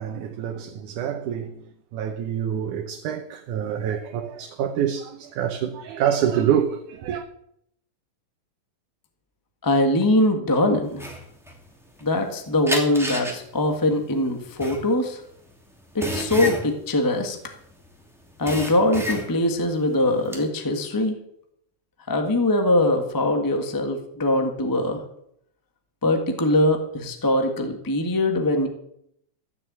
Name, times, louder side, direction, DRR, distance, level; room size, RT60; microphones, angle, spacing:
voice 1, 0.0-1.7 1.9-7.2, right 9 dB, 85° right, 2.5 m, -26 dB
voice 2, 9.6-11.0 12.0-15.2 15.9-17.4 18.4-21.2 22.1-25.0 26.0-28.7, left 1 dB, 25° left, 0.4 m, -22 dB
sound 1, 11.0-12.3 12.7-17.9 18.2-19.6 19.9-20.4, equal, ahead, 1.9 m, -31 dB
14.5 x 6.7 x 8.7 m
omnidirectional pair, 3.5 m